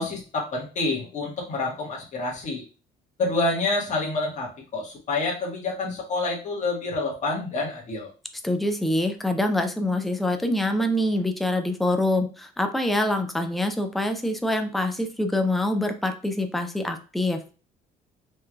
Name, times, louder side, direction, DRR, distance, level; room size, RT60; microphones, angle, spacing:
voice 1, 0.0-2.6 3.2-8.1, left 3 dB, 45° left, -3 dB, 1.4 m, -28 dB
voice 2, 8.4-17.4, left 1 dB, ahead, 6 dB, 0.5 m, -25 dB
4.3 x 3.2 x 2.3 m, 0.35 s
cardioid pair, 110°, 17 cm